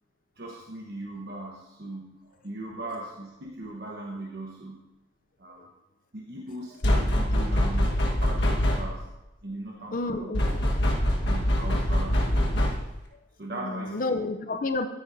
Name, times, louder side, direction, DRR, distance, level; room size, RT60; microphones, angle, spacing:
voice 1, 0.4-4.8 5.4-5.7 6.1-9.0 9.4-10.5 11.1-12.4 13.4-14.0, right 2 dB, 55° right, -2 dB, 1.1 m, -39 dB
sound 1, 6.8-9.1 10.3-13.0, equal, 60° left, 1.4 m, -24 dB
voice 2, 9.9-10.9 13.5-14.9, left 2 dB, 45° left, 8 dB, 0.6 m, -31 dB
13.5 x 9.9 x 2.7 m, 0.95 s
head